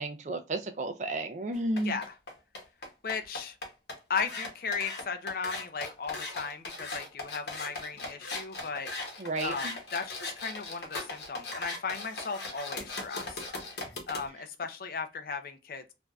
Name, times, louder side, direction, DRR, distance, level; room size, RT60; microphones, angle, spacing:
voice 1, 0.0-2.0 9.2-9.7, right 2 dB, 40° right, 0.4 m, -32 dB
sound 1, 1.5-14.2, left 2 dB, 70° left, 0.9 m, -39 dB
voice 2, 1.8-2.1 3.0-3.6 4.1-15.8, left 5 dB, 55° left, 0.5 m, -36 dB
3.3 x 2.5 x 2.2 m
head